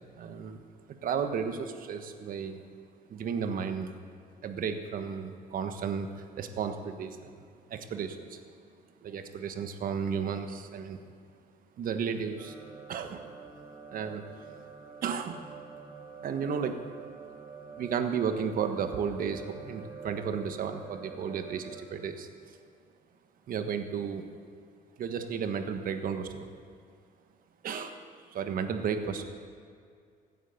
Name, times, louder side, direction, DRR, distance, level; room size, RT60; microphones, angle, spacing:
voice 1, 0.2-0.6 1.0-2.6 3.1-3.9 4.4-7.4 7.7-8.4 9.0-11.0 11.8-12.6 12.9-13.4 13.9-14.2 15.0-15.4 16.2-16.8 17.8-22.6 23.5-24.3 25.0-26.5 27.6-28.0 28.3-29.2, right 6 dB, 55° right, 7 dB, 1.4 m, -33 dB
sound 1, 12.4-21.8, right 6 dB, 20° right, 3.7 m, -47 dB
16.0 x 9.4 x 7.1 m, 2.2 s
cardioid pair, 110°, 17 cm